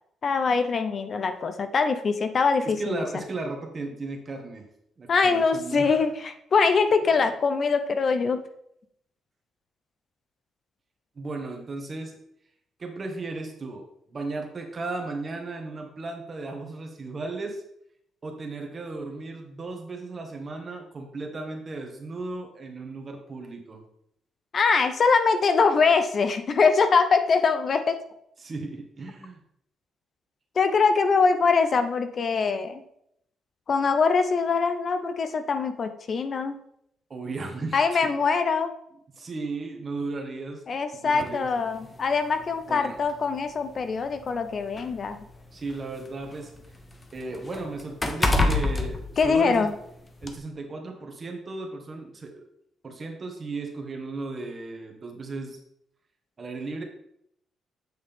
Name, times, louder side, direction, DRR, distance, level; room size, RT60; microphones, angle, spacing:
voice 1, 0.2-3.0 5.1-8.4 24.5-28.0 30.6-32.8 33.7-36.6 37.7-38.7 40.7-45.2 49.2-49.7, left 5 dB, 45° left, 9 dB, 0.8 m, -23 dB
voice 2, 2.6-4.6 5.0-6.1 11.2-12.2 12.8-17.6 18.2-23.8 28.4-29.4 37.1-38.1 39.2-41.5 42.7-43.0 45.5-46.5 47.1-49.7 50.2-52.5 52.8-55.6 56.4-56.8, right 3 dB, 35° right, 3 dB, 1.9 m, -35 dB
sound 1, 41.2-41.4 42.4-42.5 43.0-43.1 44.0-46.0 46.4-49.8 50.2-50.4, left 2 dB, 25° left, 1.0 m, -27 dB
8.1 x 6.3 x 3.7 m, 0.73 s
cardioid pair, 90°, 0 cm